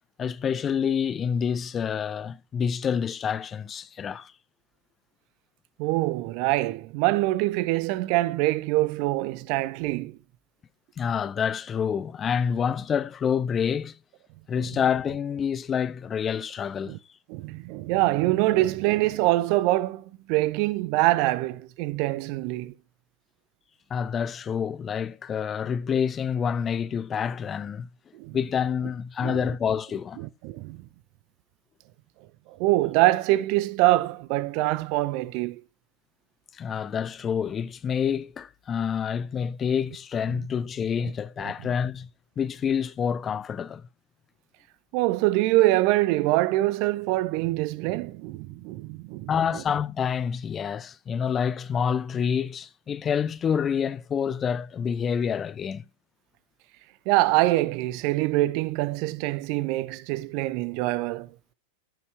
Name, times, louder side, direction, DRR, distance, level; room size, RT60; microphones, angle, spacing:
voice 1, 0.2-4.3 11.0-14.0 14.5-17.0 23.9-27.9 28.3-30.2 36.6-42.1 42.4-43.8 49.3-55.8, left 7 dB, 25° left, 0.5 m, -27 dB
voice 2, 5.8-10.2 16.9-17.0 17.3-22.7 28.1-28.4 29.2-29.4 30.2-30.8 32.5-35.6 40.4-40.5 44.9-49.6 57.1-61.3, right 18 dB, 45° right, 0.5 m, -24 dB
14.0 x 5.5 x 3.2 m
figure-of-eight pair, 90°, 0 cm